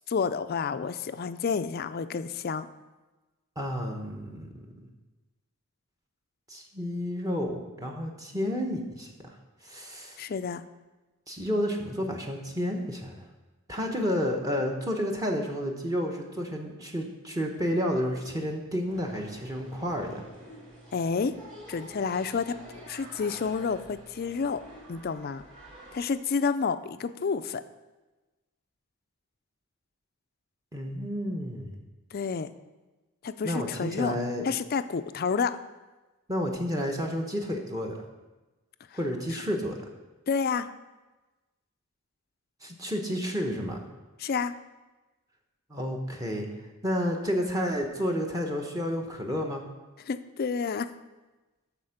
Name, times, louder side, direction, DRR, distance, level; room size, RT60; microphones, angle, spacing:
voice 1, 0.0-2.7 10.2-10.6 20.9-21.3 21.7-22.5 22.9-24.6 24.9-25.4 25.9-27.6 32.1-32.5 33.2-34.2 34.4-35.6 40.3-40.7 44.2-44.5 50.1-50.9, left 5 dB, 45° left, 12 dB, 0.4 m, -29 dB
voice 2, 3.6-4.9 6.5-9.4 9.6-10.2 11.3-13.3 13.7-20.2 30.7-31.8 33.4-34.4 36.3-38.0 38.9-39.8 42.6-43.8 45.7-46.5 46.8-49.6, equal, 15° right, 1 dB, 0.9 m, -31 dB
sound 1, 18.9-26.1, right 1 dB, 35° right, 2.5 m, -48 dB
13.0 x 4.3 x 5.7 m, 1.2 s
head